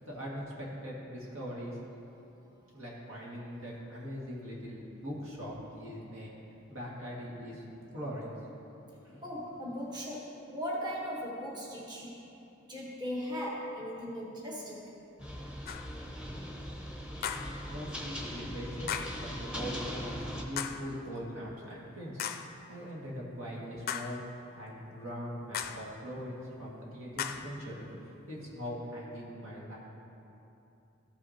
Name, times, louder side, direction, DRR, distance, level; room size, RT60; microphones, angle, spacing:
voice 1, 0.0-1.8 2.7-6.3 6.7-7.6 7.9-8.4 9.0-9.2 17.4-22.2 22.7-24.2 24.5-29.8, equal, 90° right, -5 dB, 2.0 m, -41 dB
voice 2, 9.2-12.1 12.7-14.9, equal, 20° right, -4 dB, 1.2 m, -38 dB
sound 1, 15.2-20.4, equal, 5° right, 0.9 m, -40 dB
sound 2, 15.7-16.0 17.2-17.6 18.9-19.3 20.6-20.9 22.2-22.5 23.9-24.3 25.5-25.9 27.2-27.6, left 8 dB, 50° left, 0.4 m, -37 dB
14.0 x 6.2 x 2.8 m, 2.8 s
head